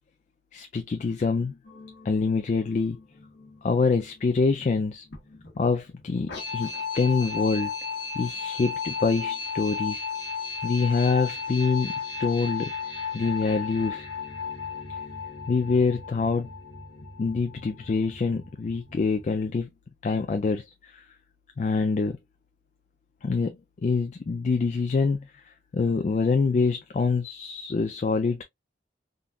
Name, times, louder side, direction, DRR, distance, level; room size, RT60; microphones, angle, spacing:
voice 1, 0.5-1.6 2.0-3.0 3.6-5.0 5.6-7.7 8.2-10.0 10.6-11.9 12.2-12.7 13.1-14.1 15.5-16.5 17.2-19.7 20.0-21.1 21.6-22.2 23.2-28.4, left 4 dB, 40° left, 0.3 m, -25 dB
sound 1, 1.6-19.5, left 5 dB, 75° left, 1.1 m, -35 dB
3.7 x 2.3 x 2.3 m
head